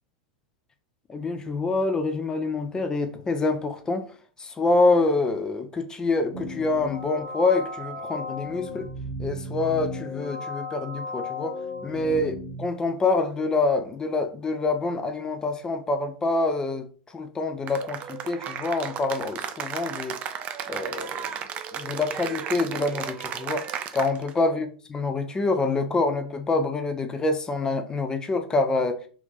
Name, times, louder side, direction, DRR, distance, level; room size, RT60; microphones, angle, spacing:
voice 1, 1.1-4.0 4.4-8.9 9.2-11.6 11.8-16.9 17.1-20.2 20.7-21.3 21.7-23.6 23.9-29.0, left 3 dB, 20° left, 0.6 m, -26 dB
sound 1, 6.3-12.6, left 1 dB, 55° right, 1.0 m, -35 dB
Cheering / Applause, 17.7-24.4, right 8 dB, 35° right, 0.4 m, -34 dB
2.6 x 2.5 x 3.7 m
hypercardioid pair, 95°, 4 cm